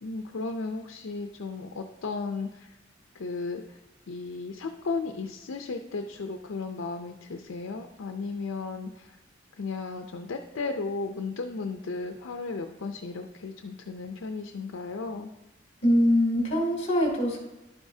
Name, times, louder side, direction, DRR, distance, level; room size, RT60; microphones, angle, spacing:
voice 1, 0.0-2.5 3.2-3.6 4.1-9.0 9.6-15.3, left 4 dB, 80° left, 5 dB, 0.5 m, -34 dB
voice 2, 15.8-17.4, equal, 30° left, -1 dB, 2.6 m, -23 dB
11.5 x 8.0 x 2.7 m, 0.99 s
head